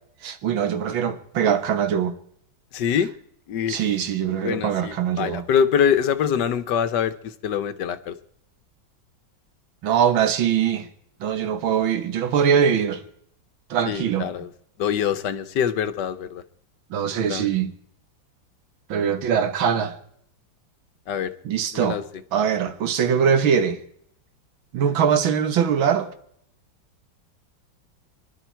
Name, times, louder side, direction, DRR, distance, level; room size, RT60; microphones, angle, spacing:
voice 1, 0.2-2.2 3.7-5.4 9.8-10.9 11.2-13.0 13.7-14.3 16.9-17.7 18.9-20.0 21.4-22.0 22.3-23.8 24.7-26.1, right 8 dB, 85° right, 2.0 m, -22 dB
voice 2, 2.7-3.1 3.5-3.8 4.4-7.1 7.4-8.1 13.9-14.5 14.8-16.4 17.3-17.5 21.1-21.3 21.7-22.0, left 8 dB, 65° left, 1.4 m, -24 dB
25.0 x 12.0 x 4.5 m
omnidirectional pair, 2.1 m